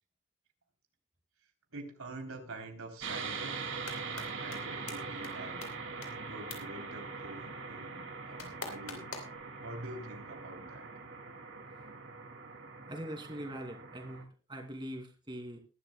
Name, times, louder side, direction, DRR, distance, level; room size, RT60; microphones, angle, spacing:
voice 1, 1.7-3.7 4.0-5.6 6.3-9.3 9.6-10.9, right 2 dB, 90° right, 4 dB, 3.3 m, -46 dB
sound 1, 3.0-14.2, right 4 dB, 60° right, 2.2 m, -42 dB
sound 2, 3.6-4.3 4.5-4.6 4.9-5.0 5.2-5.3 5.6-5.7 6.0-6.1 6.5-6.6 8.4-9.4, left 5 dB, 80° left, 3.6 m, -41 dB
voice 2, 12.9-15.6, equal, 20° right, 3 dB, 2.5 m, -42 dB
21.0 x 12.0 x 2.2 m, 0.32 s
head